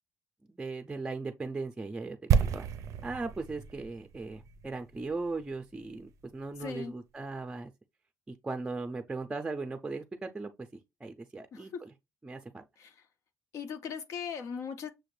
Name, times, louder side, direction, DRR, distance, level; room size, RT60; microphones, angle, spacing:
voice 1, 0.5-2.7 3.0-7.7 8.3-11.9 12.2-12.6, right 3 dB, 15° right, 0.4 m, -38 dB
sound 1, 2.3-6.2 6.5-6.6, right 7 dB, 80° right, 0.4 m, -31 dB
voice 2, 6.6-6.9 11.5-11.8 12.8-12.9 13.5-14.9, left 6 dB, 80° left, 0.6 m, -38 dB
6.3 x 2.5 x 3.2 m
cardioid pair, 130°, 5 cm